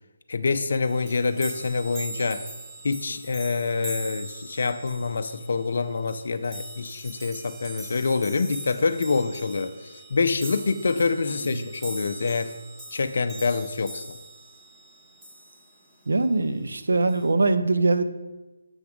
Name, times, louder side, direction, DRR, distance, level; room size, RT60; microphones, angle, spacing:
voice 1, 0.3-2.4 2.8-12.5 12.9-14.2, left 4 dB, 65° left, 9 dB, 0.4 m, -26 dB
sound 1, 0.8-15.9 17.1-17.3, right 1 dB, 15° right, 1.1 m, -41 dB
voice 2, 16.1-18.0, right 3 dB, 85° right, 10 dB, 0.6 m, -22 dB
7.1 x 3.5 x 5.9 m, 1.1 s
hypercardioid pair, 160°, 0 cm